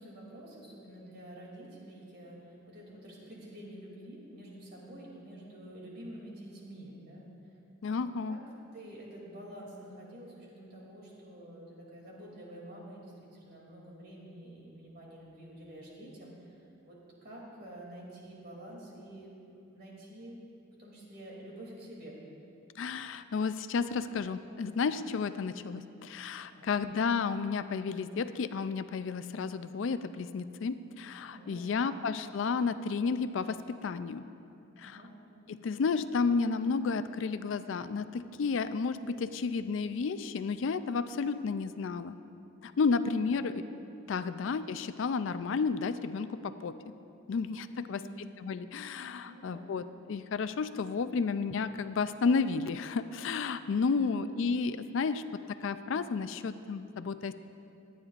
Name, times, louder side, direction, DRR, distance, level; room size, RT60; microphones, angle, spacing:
voice 1, 0.0-7.3 7.9-8.0 8.3-8.4 8.7-16.5 16.8-19.3 19.7-20.4 20.8-22.2 26.5-26.7 31.3-32.0 34.8-35.2 43.0-43.4 47.8-48.2 49.2-49.8, right 1 dB, 50° right, -3 dB, 2.7 m, -48 dB
voice 2, 7.8-8.4 22.8-34.2 34.8-35.0 35.5-42.2 42.6-43.6 44.1-46.7 47.3-55.2 55.6-57.3, left 5 dB, 65° left, 12 dB, 0.4 m, -32 dB
23.0 x 9.5 x 2.5 m, 2.7 s
head